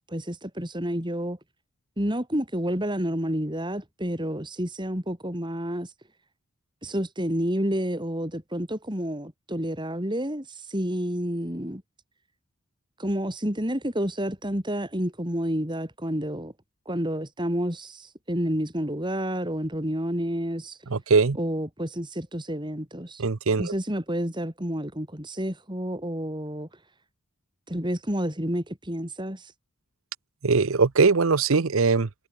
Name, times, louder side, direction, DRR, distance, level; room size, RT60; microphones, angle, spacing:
voice 1, 0.1-1.4 2.0-5.9 6.8-11.8 13.0-16.5 16.9-20.8 21.4-23.2 23.6-26.7 27.7-29.5, equal, 20° right, 4.0 m, -29 dB
voice 2, 20.9-21.4 23.2-23.7 30.4-32.1, right 4 dB, 65° right, 0.7 m, -21 dB
head